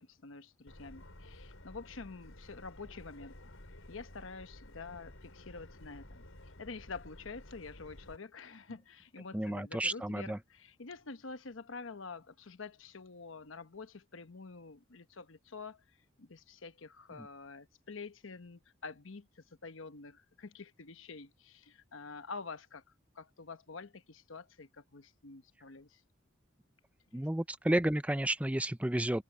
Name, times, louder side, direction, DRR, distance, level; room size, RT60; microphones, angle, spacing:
voice 1, 0.0-3.4 3.7-6.2 6.6-15.8 16.2-22.8 23.1-26.0 27.1-27.2, left 4 dB, 75° left, 1.0 m, -47 dB
Subway metro underground, 0.7-8.2, left 1 dB, 90° left, 4.4 m, -53 dB
voice 2, 9.3-10.4 17.1-17.3 27.1-29.2, right 1 dB, 5° right, 0.5 m, -32 dB
head